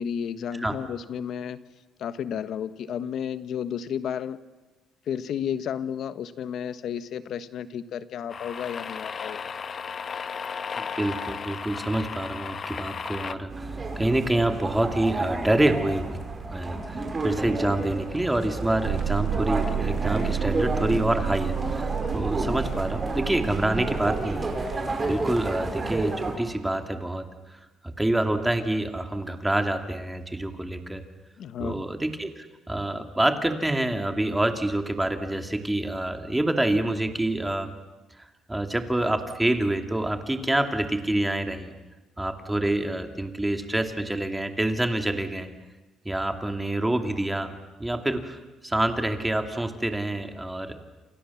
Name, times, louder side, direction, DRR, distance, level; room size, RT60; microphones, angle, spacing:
voice 1, 0.0-1.6 2.0-4.4 5.1-9.4 31.4-31.8, left 8 dB, 65° left, 13 dB, 1.3 m, -32 dB
sound 1, 8.3-13.3, left 6 dB, 40° left, 1.0 m, -35 dB
voice 2, 10.8-13.7 14.0-16.2 16.5-27.2 27.5-27.6 27.8-31.0 31.6-37.7 38.2-41.7 42.2-45.5 46.0-47.5 47.8-50.8, right 1 dB, 10° right, 6 dB, 2.5 m, -27 dB
sound 2, 13.5-26.4, right 2 dB, 25° right, 5.4 m, -31 dB
sound 3, 18.8-24.8, right 8 dB, 85° right, 1.5 m, -31 dB
28.5 x 28.0 x 7.2 m, 1.2 s
cardioid pair, 125°, 0 cm